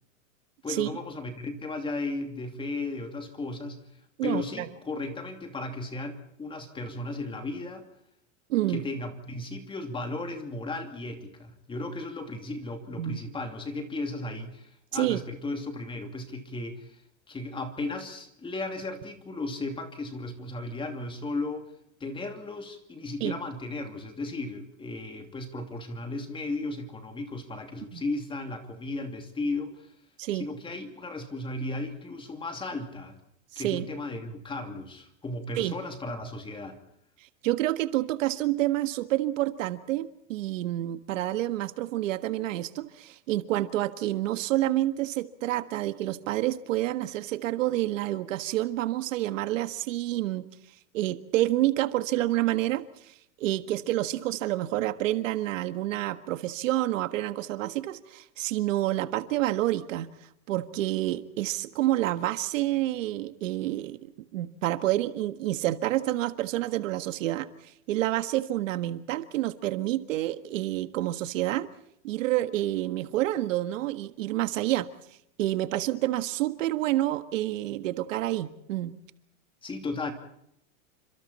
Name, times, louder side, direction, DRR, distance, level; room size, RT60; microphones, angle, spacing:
voice 1, 0.6-3.8 4.2-7.8 8.7-17.0 17.3-21.6 22.0-29.9 30.3-33.2 33.6-36.8 79.6-80.1, left 2 dB, 10° left, 5 dB, 2.8 m, -35 dB
voice 2, 4.2-4.7 8.5-8.8 13.0-13.2 14.9-15.2 23.2-23.4 27.9-28.0 30.2-30.5 33.5-33.8 35.6-35.7 37.4-50.5 50.9-60.1 60.5-71.7 72.0-74.9 75.4-78.9, right 15 dB, 65° right, 10 dB, 1.6 m, -28 dB
29.5 x 26.0 x 4.3 m, 0.75 s
supercardioid pair, 150°, 41 cm